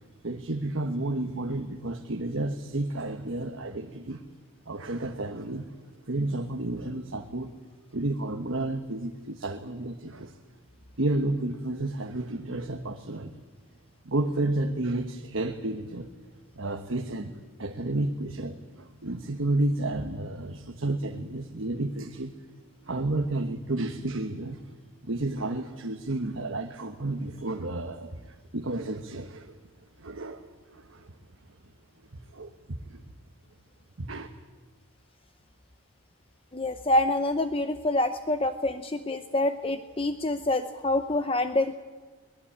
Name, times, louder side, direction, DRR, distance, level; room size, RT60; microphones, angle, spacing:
voice 1, 0.2-4.2 4.7-5.7 6.1-7.5 7.9-10.3 11.0-13.3 14.0-16.1 16.6-22.3 22.8-24.6 25.0-29.6 30.0-31.1 32.3-33.0 34.0-34.3, right 2 dB, 60° right, 5 dB, 1.2 m, -31 dB
voice 2, 36.5-41.7, left 1 dB, 25° left, 9 dB, 0.7 m, -26 dB
23.0 x 20.0 x 8.6 m, 1.4 s
head